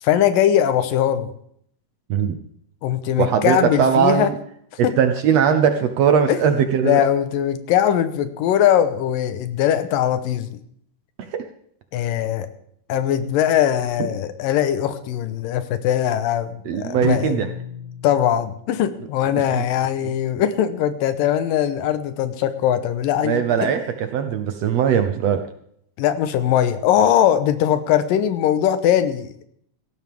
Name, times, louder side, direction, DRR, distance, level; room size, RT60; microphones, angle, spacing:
voice 1, 0.0-1.3 2.8-4.3 4.8-4.9 6.3-6.4 6.8-10.6 11.9-12.5 12.9-17.4 18.0-23.7 26.0-29.3, left 10 dB, 85° left, 11 dB, 2.6 m, -20 dB
voice 2, 3.2-4.3 4.8-7.0 11.3-11.4 16.6-17.5 23.2-25.4, right 7 dB, 70° right, 8 dB, 1.6 m, -19 dB
sound 1, 17.0-18.9, left 4 dB, 55° right, 4.7 m, -35 dB
17.5 x 14.5 x 3.5 m, 0.67 s
omnidirectional pair, 3.9 m